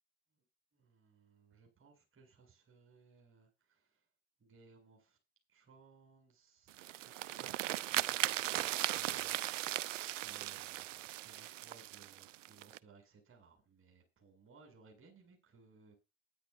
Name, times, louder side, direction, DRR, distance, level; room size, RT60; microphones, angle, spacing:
voice 1, 0.7-4.0 4.4-5.2 5.5-8.0 8.5-15.9, right 4 dB, 35° right, 2 dB, 7.4 m, -63 dB
sound 1, 6.7-12.8, right 15 dB, 85° right, 0.7 m, -38 dB
10.5 x 10.0 x 6.8 m, 0.27 s
hypercardioid pair, 75°, 37 cm